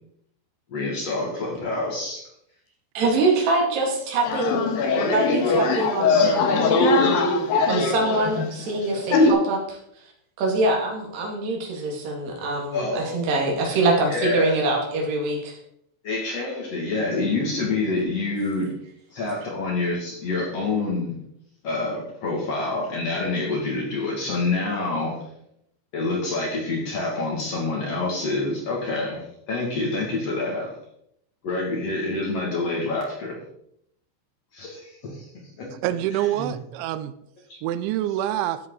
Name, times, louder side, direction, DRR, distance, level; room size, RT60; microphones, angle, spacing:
voice 1, 0.7-2.3 12.7-13.6 14.1-14.6 16.0-18.7 19.1-21.2 21.6-25.2 25.9-30.7 31.4-33.4 34.5-35.7 36.1-36.6 37.5-37.6, left 3 dB, 45° left, -2 dB, 2.2 m, -27 dB
voice 2, 2.9-4.6 5.0-6.7 7.7-9.8 10.4-15.6, right 2 dB, 60° right, -1 dB, 4.1 m, -24 dB
sound 1, 4.3-9.3, left 3 dB, 65° left, 2.4 m, -21 dB
voice 3, 35.8-37.1 37.6-38.6, right 13 dB, 80° right, 12 dB, 2.7 m, -26 dB
14.5 x 7.9 x 3.9 m, 0.72 s
omnidirectional pair, 5.7 m